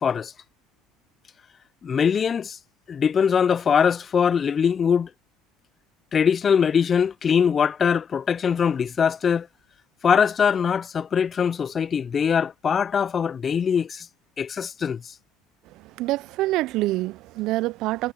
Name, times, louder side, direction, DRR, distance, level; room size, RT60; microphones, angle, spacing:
voice 1, 0.0-0.3 1.8-2.6 2.9-5.1 6.1-9.5 10.0-14.1 14.4-15.0, left 7 dB, 35° left, 0.5 m, -22 dB
voice 2, 16.0-18.1, right 18 dB, 65° right, 0.4 m, -26 dB
hypercardioid pair, 80°, 0 cm